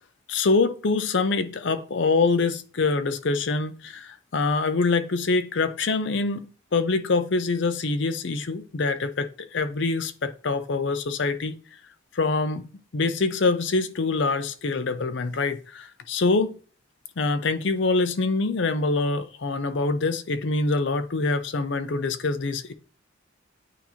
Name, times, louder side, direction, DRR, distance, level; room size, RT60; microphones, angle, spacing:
voice 1, 0.3-11.5 12.1-16.6 17.2-22.7, left 3 dB, 60° left, 0.6 m, -25 dB
8.4 x 2.8 x 4.3 m
head